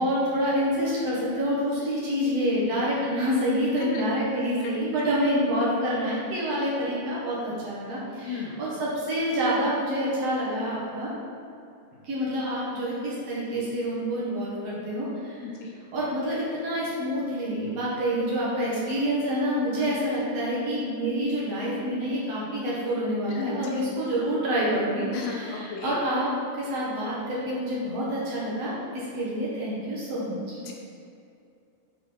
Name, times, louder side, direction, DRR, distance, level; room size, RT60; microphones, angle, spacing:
voice 1, 0.0-11.1 12.0-15.4 15.9-26.3 26.5-30.6, equal, 55° right, -7 dB, 2.0 m, -27 dB
voice 2, 8.3-8.6 15.4-15.7 19.8-19.9 23.4-24.0 25.1-26.0 30.6-30.7, left 5 dB, 90° left, -1 dB, 3.1 m, -35 dB
10.5 x 4.2 x 4.5 m, 2.5 s
omnidirectional pair, 4.7 m